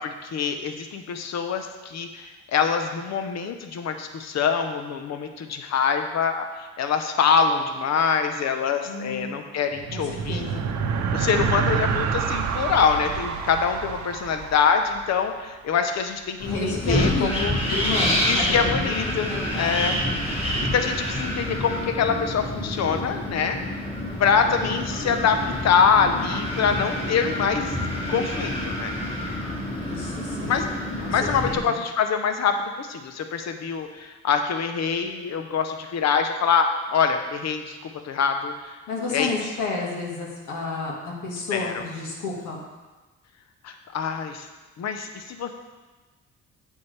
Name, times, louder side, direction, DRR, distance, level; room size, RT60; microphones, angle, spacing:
voice 1, 0.0-6.5 6.8-10.6 11.1-17.6 18.3-20.0 20.6-23.6 24.2-27.8 28.1-28.9 30.4-30.7 31.1-38.8 39.1-39.3 41.5-41.8 43.6-44.5 44.8-45.6, left 6 dB, 60° left, 6 dB, 0.9 m, -24 dB
voice 2, 8.8-9.4 9.9-10.7 16.5-17.3 17.7-18.9 19.3-19.8 29.8-30.6 31.0-31.8 38.9-42.6, left 3 dB, 80° left, -2 dB, 1.9 m, -31 dB
sound 1, 9.7-15.4, right 6 dB, 70° right, 0.8 m, -28 dB
Wind, 16.4-31.6, equal, 20° left, 2.4 m, -28 dB
8.6 x 7.3 x 3.4 m, 1.2 s
cardioid pair, 90°, 30 cm